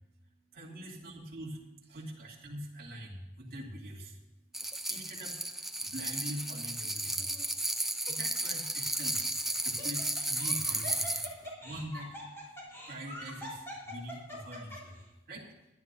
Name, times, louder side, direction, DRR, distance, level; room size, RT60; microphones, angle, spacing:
voice 1, 0.5-4.2 4.9-7.3 8.1-11.3 11.6-12.5 12.9-15.0 15.3-15.5, right 1 dB, 50° right, -4 dB, 2.7 m, -44 dB
sound 1, 4.5-11.3, right 1 dB, ahead, 0.6 m, -34 dB
Laughter, 7.0-7.4 8.1-8.2 9.4-15.0, left 1 dB, 15° left, 3.9 m, -44 dB
23.0 x 10.5 x 2.7 m, 1.0 s
head